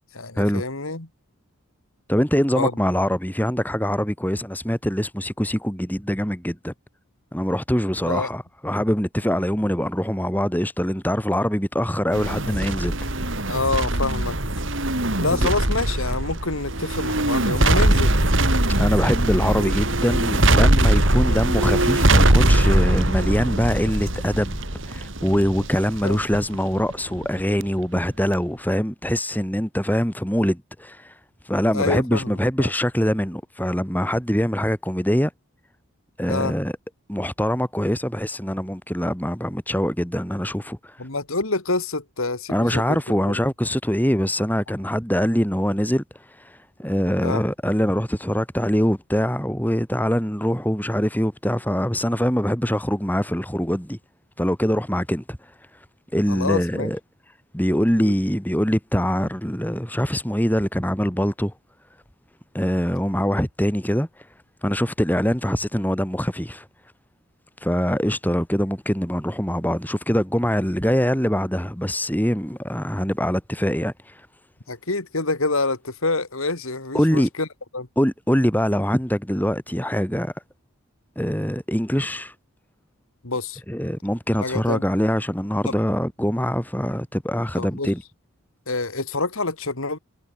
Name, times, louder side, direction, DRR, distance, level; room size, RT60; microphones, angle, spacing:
voice 1, 0.1-1.1 2.5-2.7 8.0-8.3 13.5-14.4 15.2-18.1 26.0-26.2 31.7-32.7 36.3-36.5 41.0-43.0 43.2-43.4 47.2-47.4 56.3-56.9 58.0-58.1 74.7-77.5 77.7-77.9 83.2-83.6 84.4-84.8 85.7-85.8 87.6-87.9 88.7-90.0, left 3 dB, 70° left, 2.5 m, -26 dB
voice 2, 2.1-6.7 7.3-13.1 15.3-15.5 18.8-24.6 24.9-31.1 31.4-35.3 36.2-36.7 37.1-41.0 42.5-54.0 54.4-55.4 56.1-57.0 57.5-61.5 62.5-64.1 64.6-66.7 67.6-74.2 76.9-77.3 78.0-80.3 81.1-82.3 83.7-88.0, equal, 10° left, 5.1 m, -23 dB
sound 1, 12.1-27.6 28.0-28.1, right 1 dB, 55° right, 4.3 m, -21 dB
head